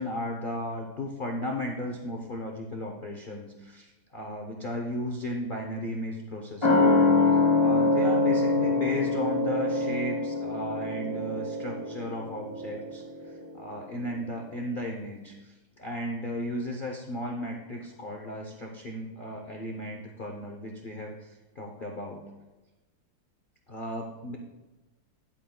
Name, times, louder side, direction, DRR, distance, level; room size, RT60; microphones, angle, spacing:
voice 1, 0.0-6.8 7.3-22.2 23.7-24.4, left 1 dB, 65° left, 0 dB, 0.5 m, -35 dB
sound 1, 6.6-13.7 14.0-14.1, left 2 dB, 20° left, 0.8 m, -25 dB
10.0 x 8.5 x 2.3 m, 1.1 s
omnidirectional pair, 2.1 m